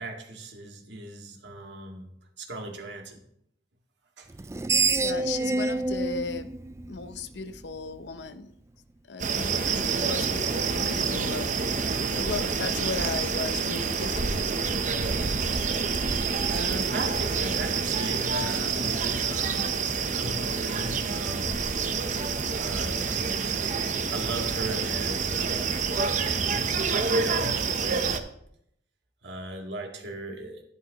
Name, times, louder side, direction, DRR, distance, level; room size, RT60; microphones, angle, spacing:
voice 1, 0.0-2.1 2.4-3.2 4.2-4.3 15.5-15.6 16.4-19.7 20.1-21.6 22.5-23.5 24.1-25.9 26.5-28.2 29.2-30.6, right 1 dB, 90° right, 2 dB, 2.0 m, -37 dB
Screech, 4.3-7.6, right 3 dB, 15° right, 0.3 m, -27 dB
voice 2, 5.0-6.5 6.9-8.5 9.1-11.9 12.1-14.5, left 4 dB, 75° left, 11 dB, 0.7 m, -36 dB
sound 1, 9.2-28.2, right 5 dB, 45° right, 0.8 m, -27 dB
12.0 x 11.0 x 3.0 m, 0.72 s
head